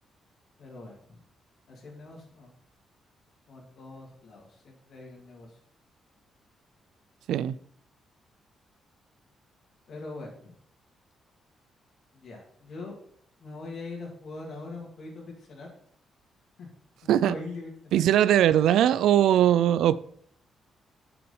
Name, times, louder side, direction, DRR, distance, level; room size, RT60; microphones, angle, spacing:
voice 1, 0.6-1.2 1.7-2.5 3.5-5.6 9.9-10.5 12.1-12.9 13.4-15.7 16.6-16.7 17.0-18.0, left 3 dB, 60° left, 0 dB, 2.2 m, -42 dB
voice 2, 17.9-19.9, right 11 dB, 85° right, 17 dB, 0.3 m, -20 dB
6.2 x 5.9 x 5.5 m, 0.65 s
cardioid pair, 120°, 0 cm